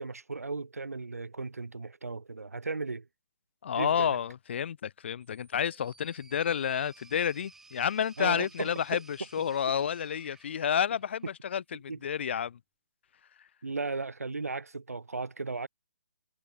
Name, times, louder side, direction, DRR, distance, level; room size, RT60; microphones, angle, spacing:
voice 1, 0.0-3.1 3.8-4.2 8.2-9.0 11.9-12.0 13.6-15.7, right 3 dB, 75° right, 2.2 m, -36 dB
voice 2, 3.6-12.6, left 8 dB, 45° left, 1.1 m, -30 dB
sound 1, 5.2-11.4, right 3 dB, 5° right, 6.7 m, -57 dB
figure-of-eight pair, 135°, 8 cm